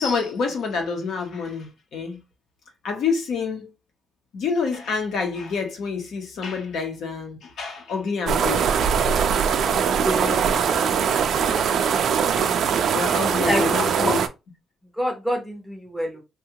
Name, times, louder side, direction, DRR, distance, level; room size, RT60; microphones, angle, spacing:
voice 1, 0.0-2.2 2.8-3.7 4.3-8.9 12.3-12.6 12.9-14.2, left 5 dB, 65° left, 0.9 m, -27 dB
sound 1, 8.3-14.3, right 7 dB, 60° right, 0.4 m, -21 dB
voice 2, 10.0-11.1 13.3-14.1 15.0-16.2, equal, 5° left, 0.7 m, -28 dB
3.5 x 2.3 x 2.8 m
cardioid pair, 165°, 0 cm